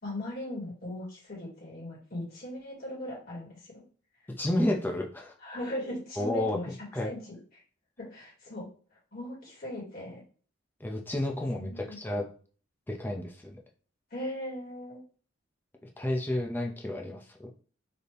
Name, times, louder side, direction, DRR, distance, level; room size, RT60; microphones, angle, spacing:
voice 1, 0.0-3.8 5.4-6.7 7.0-7.4 8.0-8.7 9.1-10.2 11.6-12.0 14.1-15.0, left 1 dB, 50° left, -4 dB, 2.1 m, -38 dB
voice 2, 4.4-5.3 6.2-6.6 6.9-7.1 10.8-12.3 12.9-13.6 15.8-17.5, left 1 dB, 10° left, 1 dB, 0.5 m, -31 dB
4.1 x 2.7 x 3.3 m, 0.41 s
head